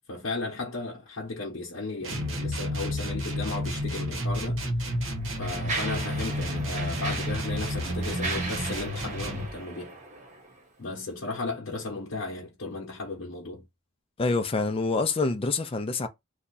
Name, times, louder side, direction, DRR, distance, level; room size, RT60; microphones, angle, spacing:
voice 1, 0.0-4.7 5.4-9.9 10.8-13.6, left 3 dB, 80° left, 0.9 m, -35 dB
sound 1, 2.0-9.5, equal, 75° right, 1.1 m, -31 dB
Mechanisms, 4.0-4.2 4.9-10.6, right 3 dB, 35° right, 1.0 m, -37 dB
voice 2, 14.2-16.1, left 3 dB, 30° left, 0.5 m, -26 dB
2.8 x 2.3 x 4.0 m
head